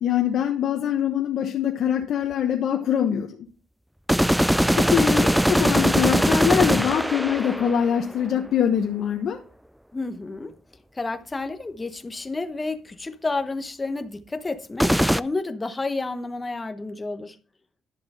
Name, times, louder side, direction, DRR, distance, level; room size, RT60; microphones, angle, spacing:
voice 1, 0.0-3.4 4.1-4.3 4.8-9.4, left 9 dB, 70° left, 1.1 m, -23 dB
sound 1, 4.1-8.1 14.8-15.2, equal, ahead, 0.4 m, -21 dB
voice 2, 9.9-10.6 10.9-17.4, left 3 dB, 20° left, 1.0 m, -30 dB
11.0 x 7.1 x 4.2 m
cardioid pair, 90°, 0 cm